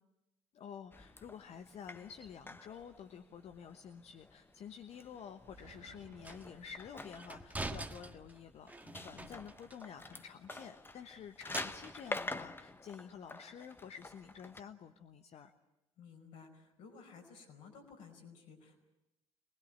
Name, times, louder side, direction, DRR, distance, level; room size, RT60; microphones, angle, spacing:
voice 1, 0.5-15.5, left 7 dB, 50° left, 8 dB, 1.1 m, -50 dB
sound 1, 0.9-14.6, left 2 dB, 15° left, 1.1 m, -48 dB
sound 2, 5.3-5.4 6.2-6.5 7.1-9.8 10.1-10.2 10.5-12.2, right 2 dB, 10° right, 1.6 m, -45 dB
sound 3, 5.5-7.7, right 5 dB, 65° right, 2.1 m, -61 dB
voice 2, 8.8-9.4 16.0-18.8, left 5 dB, 65° left, 2 dB, 5.1 m, -55 dB
24.0 x 20.0 x 8.9 m, 0.94 s
figure-of-eight pair, 55°, 14 cm